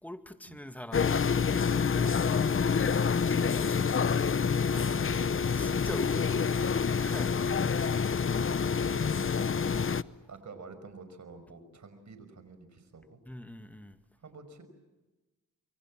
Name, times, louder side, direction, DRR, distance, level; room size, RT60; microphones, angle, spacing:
voice 1, 0.0-2.5 3.3-4.0 4.7-6.6 6.9-8.1 9.7-10.1 13.3-14.0, left 1 dB, 5° left, 2.2 m, -44 dB
sound 1, 0.9-10.0, left 6 dB, 40° left, 0.8 m, -27 dB
voice 2, 4.7-5.5 8.3-8.4 8.9-9.3 10.3-13.2 14.2-14.6, right 4 dB, 60° right, 5.7 m, -49 dB
27.5 x 24.0 x 7.6 m
cardioid pair, 65°, 32 cm